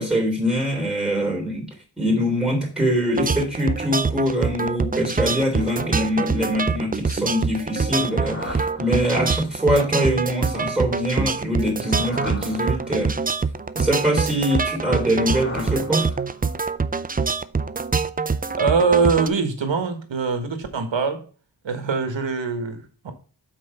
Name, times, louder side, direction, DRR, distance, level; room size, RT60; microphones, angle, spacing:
voice 1, 0.0-1.7 2.0-13.2 13.7-16.1, equal, ahead, 3.4 m, -23 dB
sound 1, 3.2-19.3, right 4 dB, 20° right, 0.4 m, -25 dB
sound 2, 7.7-9.5 11.5-13.3 14.8-16.6, left 1 dB, 25° left, 2.4 m, -38 dB
voice 2, 18.5-21.2 21.6-23.1, right 5 dB, 70° right, 1.5 m, -23 dB
6.0 x 4.5 x 5.5 m
cardioid pair, 50°, 46 cm